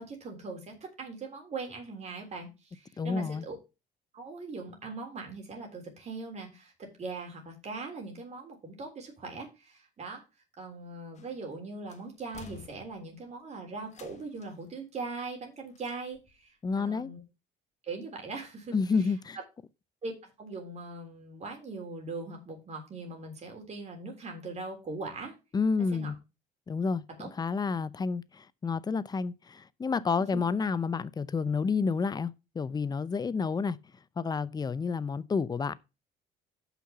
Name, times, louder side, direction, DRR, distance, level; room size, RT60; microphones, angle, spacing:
voice 1, 0.0-3.6 4.1-10.2 10.6-17.2 17.8-18.8 20.0-25.3 25.9-26.1 27.2-27.3 30.2-30.4, right 3 dB, 40° right, 3.5 m, -40 dB
voice 2, 3.0-3.5 16.6-17.1 18.7-19.4 25.5-26.1 26.7-33.8 34.2-35.8, left 5 dB, 25° left, 0.6 m, -30 dB
sound 1, 11.1-11.5 11.9-13.3 13.9-14.7 15.7-16.4 16.7-16.8, left 7 dB, 45° left, 1.4 m, -52 dB
5.8 x 5.7 x 6.8 m
cardioid pair, 110°, 17 cm